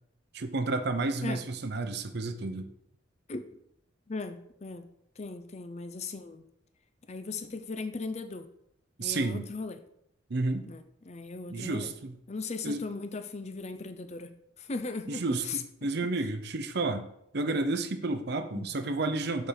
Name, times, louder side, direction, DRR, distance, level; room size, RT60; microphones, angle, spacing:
voice 1, 0.3-2.7 9.0-9.5 10.3-10.7 11.5-12.2 12.6-12.9 15.1-17.1 17.3-19.5, right 2 dB, 55° right, 8 dB, 0.7 m, -31 dB
voice 2, 4.1-4.9 5.2-6.5 7.1-8.5 9.0-9.8 10.7-11.9 12.3-15.6 18.5-18.7, left 3 dB, 35° left, 9 dB, 0.6 m, -38 dB
6.8 x 4.5 x 5.1 m, 0.73 s
head